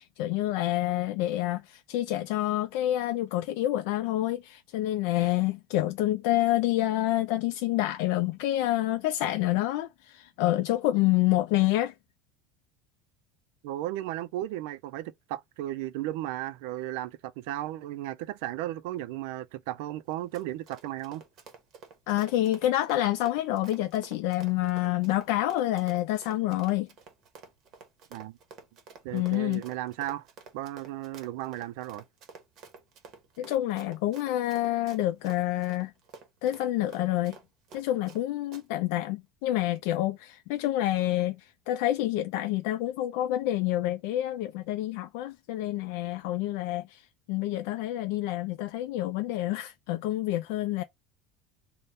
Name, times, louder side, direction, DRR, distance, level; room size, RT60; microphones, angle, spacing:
voice 1, 0.0-11.9 22.1-26.9 29.1-29.6 33.4-35.9 36.4-37.4 37.7-50.8, left 15 dB, 65° left, 0.3 m, -28 dB
voice 2, 13.6-21.2 28.1-28.4 29.0-30.3 30.5-32.0, right 14 dB, 70° right, 0.4 m, -35 dB
Run, 20.1-38.2 38.5-38.6, right 5 dB, 40° right, 0.9 m, -50 dB
3.4 x 2.1 x 4.0 m
cardioid pair, 165°, 0 cm